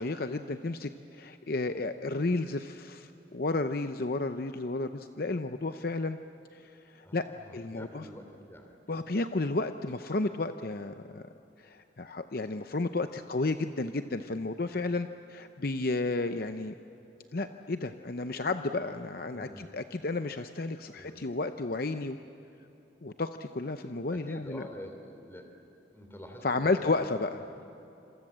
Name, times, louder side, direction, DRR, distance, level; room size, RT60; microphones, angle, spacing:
voice 1, 0.0-6.2 6.5-7.3 7.5-8.0 8.9-11.3 11.6-16.7 17.3-22.2 23.0-24.6 26.4-27.4, left 3 dB, 50° left, 8 dB, 0.7 m, -32 dB
voice 2, 7.0-8.7 19.3-19.8 20.9-21.2 24.1-25.5 25.9-26.9, equal, 15° left, 4 dB, 3.2 m, -47 dB
27.0 x 26.5 x 7.5 m, 3.0 s
head